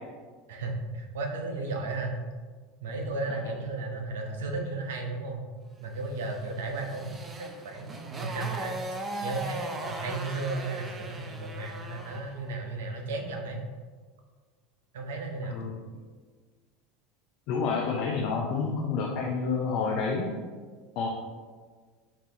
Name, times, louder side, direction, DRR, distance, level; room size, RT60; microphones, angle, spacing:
voice 1, 0.5-2.2 2.8-5.4 5.8-8.8 9.2-13.6 14.9-15.6, right 3 dB, 75° right, 3 dB, 0.6 m, -34 dB
Motorcycle, 6.3-12.3, right 2 dB, 25° right, 0.5 m, -39 dB
voice 2, 17.5-20.4 21.0-21.1, left 5 dB, 60° left, -1 dB, 0.5 m, -29 dB
5.7 x 2.3 x 2.8 m, 1.5 s
hypercardioid pair, 85°, 0 cm